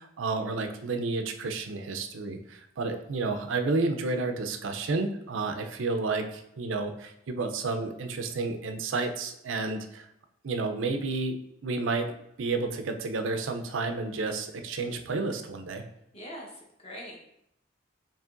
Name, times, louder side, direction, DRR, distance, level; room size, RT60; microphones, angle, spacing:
voice 1, 0.0-10.1 10.4-11.4 11.6-12.1 12.4-15.8, right 3 dB, 65° right, 6 dB, 0.5 m, -31 dB
voice 2, 16.1-17.4, equal, 30° left, -2 dB, 1.1 m, -43 dB
7.1 x 3.0 x 2.5 m, 0.78 s
head